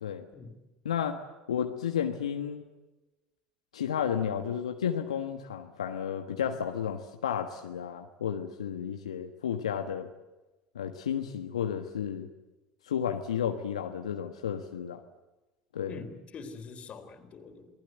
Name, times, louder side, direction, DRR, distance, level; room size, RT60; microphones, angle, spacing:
voice 1, 0.8-1.2 1.5-2.6 3.7-10.1 10.7-12.3 12.9-15.0 15.7-16.0, left 8 dB, 80° left, 5 dB, 1.4 m, -32 dB
voice 2, 15.9-17.7, left 4 dB, 35° left, 7 dB, 3.9 m, -44 dB
28.5 x 19.0 x 8.0 m, 1.1 s
figure-of-eight pair, 70°, 3 cm